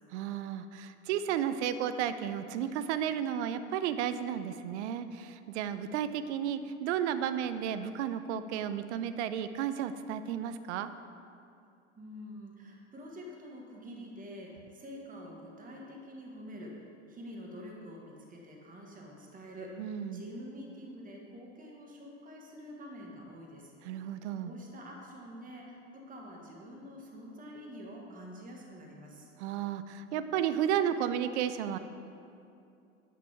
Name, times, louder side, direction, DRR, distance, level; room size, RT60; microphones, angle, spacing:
voice 1, 0.1-10.9 19.8-20.2 23.8-24.5 29.4-31.8, right 9 dB, 65° right, 11 dB, 0.5 m, -33 dB
voice 2, 12.0-19.7 20.1-23.7 24.4-29.3, equal, 20° right, -1 dB, 1.4 m, -47 dB
8.5 x 5.1 x 3.4 m, 2.6 s
hypercardioid pair, 80°, 37 cm